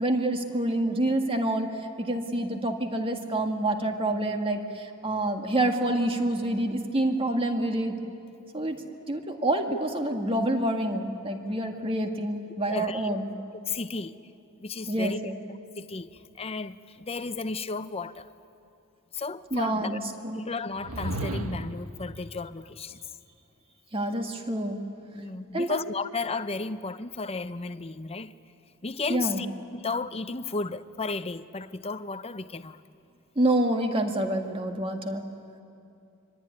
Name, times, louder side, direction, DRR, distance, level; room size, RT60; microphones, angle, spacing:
voice 1, 0.0-1.7 2.0-8.0 8.5-8.8 9.1-13.3 14.9-15.4 19.5-20.4 23.9-24.8 25.5-25.8 29.1-29.5 33.4-35.2, right 1 dB, 25° right, 2.0 m, -27 dB
voice 2, 12.7-13.1 13.7-14.2 14.6-15.2 15.8-18.3 19.1-20.0 20.3-23.1 25.1-28.3 28.8-29.5 29.7-32.8, left 3 dB, 30° left, 0.7 m, -34 dB
sound 1, 20.7-21.9, right 1 dB, 90° right, 1.6 m, -33 dB
24.5 x 24.5 x 9.8 m
head